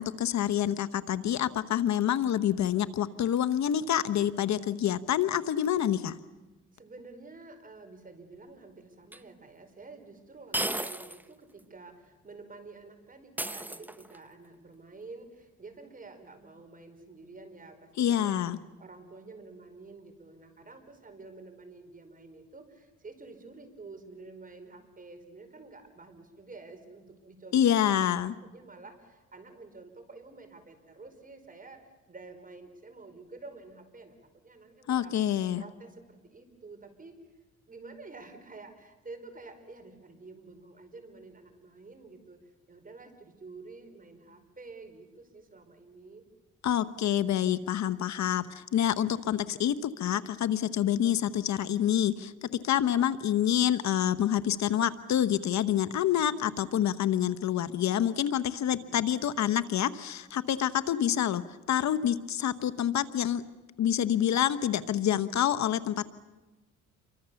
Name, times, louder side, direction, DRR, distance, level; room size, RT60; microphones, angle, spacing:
voice 1, 0.0-6.2 18.0-18.6 27.5-28.3 34.9-35.6 46.6-61.4 61.7-63.4 63.8-66.0, left 10 dB, 65° left, 12 dB, 1.1 m, -27 dB
voice 2, 6.7-18.4 18.8-34.2 34.4-35.1 35.6-37.2 37.7-46.2 58.7-59.2, right 3 dB, 30° right, 7 dB, 5.0 m, -49 dB
sound 1, 9.1-9.2 10.5-11.2 11.6-11.7 13.4-14.3, right 1 dB, 5° right, 0.9 m, -34 dB
28.5 x 24.5 x 7.1 m, 1.1 s
cardioid pair, 90°, 30 cm